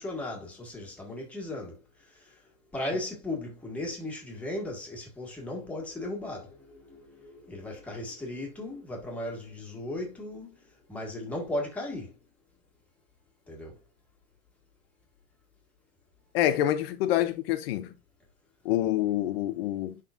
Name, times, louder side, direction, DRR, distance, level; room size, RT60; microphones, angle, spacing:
voice 1, 0.0-2.4 2.7-10.5 10.9-12.1 13.5-13.8, left 1 dB, 5° left, 1.6 m, -36 dB
voice 2, 16.3-17.9 18.6-20.0, left 12 dB, 40° left, 0.8 m, -27 dB
11.0 x 3.9 x 2.5 m
supercardioid pair, 175°, 46 cm